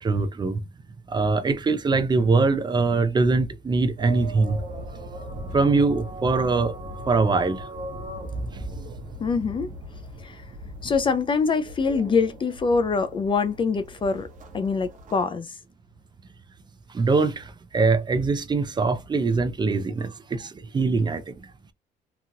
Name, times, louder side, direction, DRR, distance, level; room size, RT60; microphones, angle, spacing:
voice 1, 0.0-0.6 1.1-4.6 5.5-6.8 7.1-7.6 16.9-21.3, right 3 dB, 25° right, 0.5 m, -22 dB
sound 1, 4.0-15.2, equal, 50° right, 1.1 m, -39 dB
voice 2, 9.2-9.7 10.2-10.4 10.8-14.3 14.5-15.5, left 5 dB, 30° left, 0.4 m, -24 dB
2.9 x 2.4 x 2.8 m
cardioid pair, 110°, 17 cm